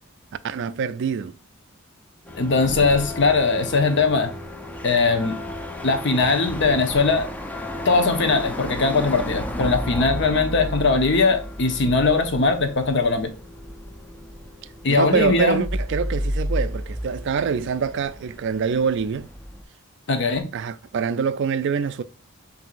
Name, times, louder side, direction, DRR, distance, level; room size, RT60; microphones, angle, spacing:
voice 1, 0.4-1.4 14.9-19.3 20.5-22.0, right 6 dB, 55° right, 0.3 m, -25 dB
sound 1, 2.3-19.6, equal, 5° left, 0.5 m, -32 dB
voice 2, 2.4-4.3 4.8-5.4 5.8-7.3 7.8-13.3 14.8-15.6 20.1-20.5, left 3 dB, 55° left, 0.8 m, -20 dB
5.8 x 2.7 x 2.5 m
head